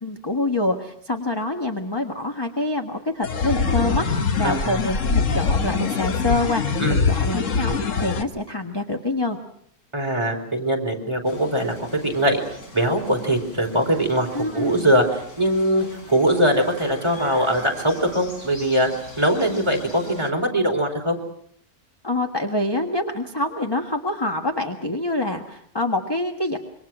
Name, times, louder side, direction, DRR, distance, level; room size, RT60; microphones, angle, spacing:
voice 1, 0.0-9.4 14.3-14.9 22.0-26.6, left 2 dB, 15° left, 4 dB, 1.4 m, -26 dB
sound 1, 3.2-8.2, left 5 dB, 55° left, 1.5 m, -23 dB
voice 2, 4.4-4.8 6.8-7.0 9.9-12.4 12.7-18.9 19.2-21.2, right 1 dB, 15° right, 2 dB, 4.3 m, -22 dB
sound 2, 11.3-20.3, left 1 dB, 70° left, 4.7 m, -42 dB
27.0 x 24.0 x 6.1 m, 0.68 s
omnidirectional pair, 1.7 m